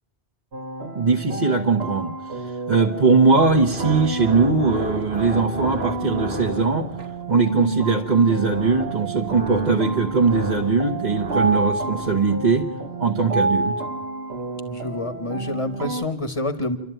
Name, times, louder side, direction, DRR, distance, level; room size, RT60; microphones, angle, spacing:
sound 1, 0.5-16.0, right 2 dB, 85° right, 1.5 m, -30 dB
voice 1, 0.9-6.9 7.3-12.7 13.0-13.8, right 4 dB, 45° right, 0 dB, 1.1 m, -20 dB
sound 2, 3.2-7.2 8.2-12.2, right 2 dB, 70° right, 1.6 m, -34 dB
voice 2, 14.6-16.8, left 1 dB, 30° left, 9 dB, 1.2 m, -27 dB
28.0 x 12.0 x 9.1 m, 0.92 s
omnidirectional pair, 1.1 m